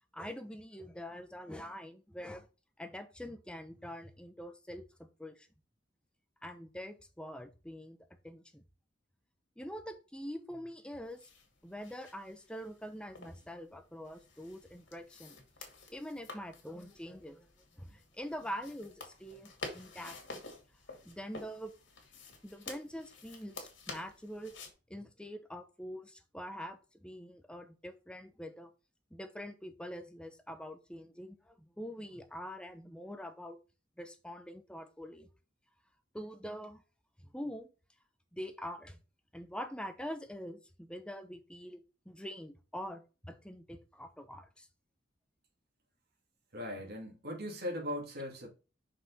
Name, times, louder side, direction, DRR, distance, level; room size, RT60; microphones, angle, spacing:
voice 1, 0.1-2.5 2.8-5.5 6.4-8.0 8.2-8.6 9.6-11.3 11.6-15.4 15.9-17.5 17.7-20.4 21.0-21.7 22.4-24.5 24.9-28.7 29.1-33.6 34.0-35.3 36.1-36.8 37.2-37.7 38.3-39.0 39.3-41.8 42.0-44.7, equal, 5° left, 0.9 m, -44 dB
sound 1, 11.0-24.7, left 3 dB, 75° left, 2.3 m, -50 dB
voice 2, 46.5-48.5, left 1 dB, 55° right, 2.7 m, -39 dB
5.9 x 4.9 x 4.1 m
head